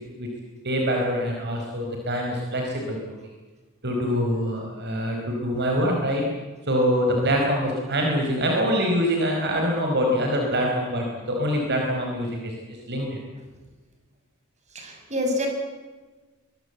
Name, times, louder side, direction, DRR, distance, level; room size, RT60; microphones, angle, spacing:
voice 1, 0.6-3.0 3.8-6.2 6.7-13.2, equal, 55° right, 1 dB, 4.9 m, -24 dB
voice 2, 14.7-15.5, left 1 dB, 35° right, 3 dB, 6.7 m, -27 dB
24.0 x 23.0 x 8.2 m, 1.3 s
head